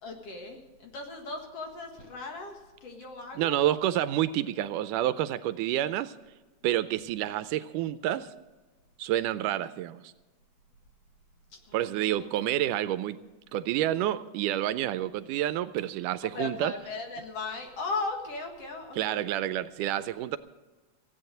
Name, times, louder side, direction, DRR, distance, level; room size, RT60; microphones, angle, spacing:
voice 1, 0.0-3.6 11.7-12.2 16.3-19.2, left 3 dB, 55° left, 3 dB, 2.5 m, -37 dB
voice 2, 3.4-6.2 6.6-8.3 9.0-10.1 11.7-13.2 13.5-16.7 19.0-20.4, right 12 dB, 80° right, 13 dB, 2.0 m, -29 dB
16.0 x 8.8 x 7.7 m, 1.2 s
omnidirectional pair, 3.7 m